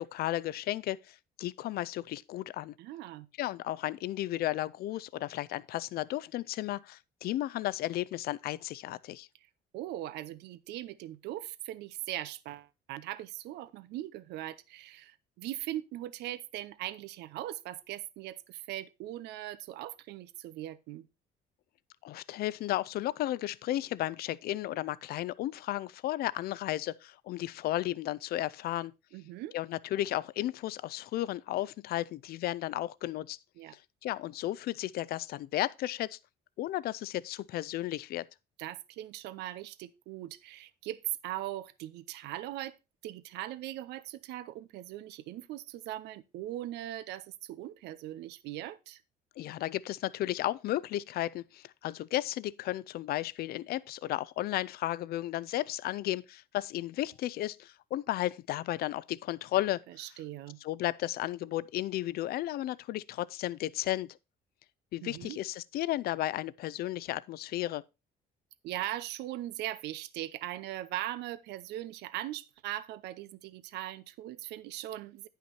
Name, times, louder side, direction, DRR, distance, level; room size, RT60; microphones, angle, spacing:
voice 1, 0.0-2.7 3.4-9.3 22.0-28.9 29.5-33.4 33.7-36.2 36.6-38.3 49.4-59.8 60.6-64.2 64.9-67.8, left 14 dB, 65° left, 0.5 m, -34 dB
voice 2, 2.8-3.3 9.7-21.1 29.1-29.5 33.6-33.8 38.6-42.8 43.0-49.0 60.0-60.6 65.0-65.4 68.6-75.3, right 14 dB, 80° right, 0.7 m, -40 dB
9.9 x 5.7 x 4.3 m
cardioid pair, 110°, 17 cm